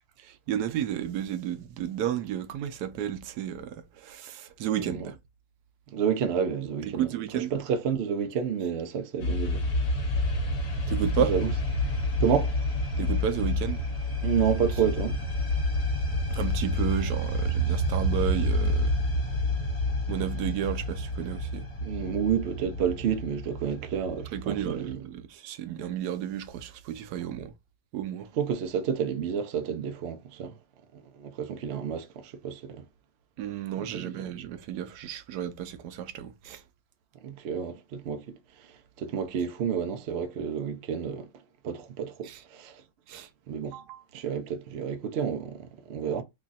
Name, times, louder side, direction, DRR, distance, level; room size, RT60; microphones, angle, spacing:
voice 1, 0.2-5.2 6.9-7.5 10.9-11.4 13.0-13.8 16.3-19.0 20.1-21.7 24.3-27.5 27.9-28.3 33.4-36.6 42.2-42.4 43.1-43.3 43.7-44.0, right 10 dB, 90° right, 1.1 m, -32 dB
voice 2, 4.8-5.1 5.9-7.1 7.3-9.6 11.2-11.5 12.2-12.5 14.2-15.2 21.8-25.0 28.4-30.5 31.2-32.8 33.8-34.3 37.2-38.3 39.0-41.3 41.6-42.8 43.5-43.8 44.1-46.2, right 7 dB, 60° right, 0.7 m, -30 dB
sound 1, 9.2-24.9, left 1 dB, 45° left, 1.3 m, -29 dB
3.0 x 2.4 x 3.9 m
omnidirectional pair, 1.6 m